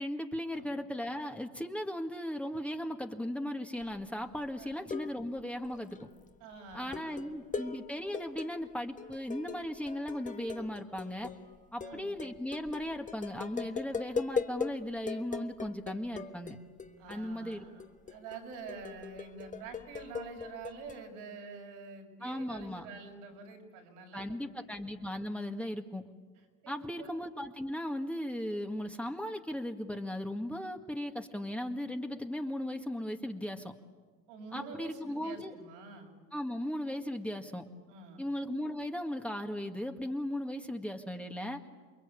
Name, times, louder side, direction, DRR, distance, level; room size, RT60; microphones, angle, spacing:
voice 1, 0.0-6.0 6.7-11.3 11.7-16.6 17.1-17.7 22.2-22.9 24.1-26.0 26.7-33.7 34.5-35.6 36.3-37.6 38.2-41.6, left 1 dB, 5° left, 4 dB, 1.9 m, -37 dB
sound 1, 3.8-4.1 4.4-5.4 5.6-6.0 6.7-14.8 15.1-17.2 17.5-21.0, left 5 dB, 20° left, 1.4 m, -40 dB
voice 2, 6.4-7.6 11.8-12.2 17.0-24.5 26.6-27.1 34.3-36.1 37.9-38.2, right 4 dB, 85° right, 1 dB, 6.8 m, -47 dB
29.0 x 21.5 x 8.6 m, 1.4 s
supercardioid pair, 90°, 34 cm